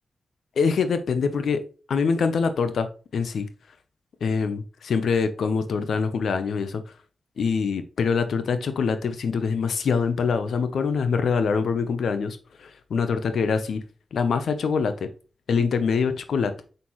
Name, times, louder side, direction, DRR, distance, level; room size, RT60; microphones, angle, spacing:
voice 1, 0.6-1.6 1.9-2.9 3.1-3.5 4.2-6.8 7.4-13.8 14.1-15.1 15.5-16.5, left 5 dB, 85° left, 0.8 m, -24 dB
6.6 x 5.6 x 3.1 m
cardioid pair, 40°, 0 cm